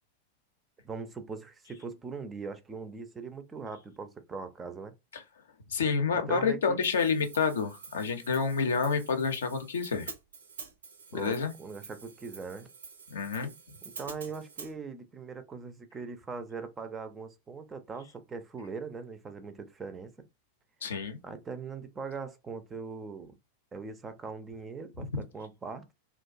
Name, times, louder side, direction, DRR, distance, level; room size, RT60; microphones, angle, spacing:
voice 1, 0.8-4.9 6.1-6.8 11.1-12.7 14.0-20.3 21.2-23.4 23.7-25.9, right 4 dB, 15° right, 0.4 m, -41 dB
voice 2, 5.7-10.1 11.1-11.5 13.1-13.5 20.8-21.2 25.1-25.2, left 5 dB, 65° left, 0.5 m, -29 dB
Hi-hat, 6.8-14.7, right 5 dB, 70° right, 0.5 m, -48 dB
2.4 x 2.2 x 2.4 m
figure-of-eight pair, 90°, 0 cm